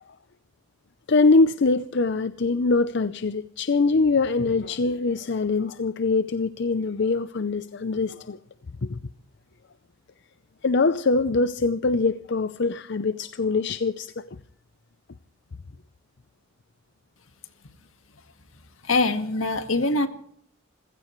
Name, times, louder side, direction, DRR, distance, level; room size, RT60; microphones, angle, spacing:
voice 1, 1.1-8.4 8.8-9.0 10.6-14.3, left 3 dB, 55° left, 0.6 m, -23 dB
voice 2, 18.8-20.1, left 2 dB, 75° left, 1.7 m, -23 dB
27.0 x 16.0 x 3.1 m
head